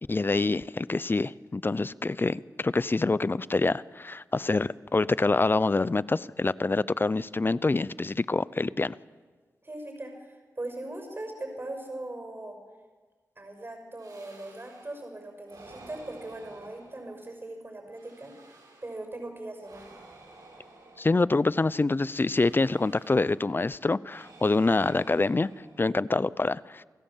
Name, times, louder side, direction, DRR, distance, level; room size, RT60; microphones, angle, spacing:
voice 1, 0.1-9.0 21.0-25.5 25.8-26.8, left 3 dB, 35° left, 19 dB, 0.6 m, -26 dB
voice 2, 9.6-12.6 13.4-18.5 18.8-19.8, right 2 dB, 35° right, 4 dB, 6.5 m, -40 dB
sound 1, 14.0-15.1 15.4-17.4 17.9-19.1 19.6-21.6 22.1-23.5 24.0-26.1, right 2 dB, 85° right, 6.8 m, -52 dB
29.0 x 15.5 x 7.4 m, 1.4 s
cardioid pair, 55°, 6 cm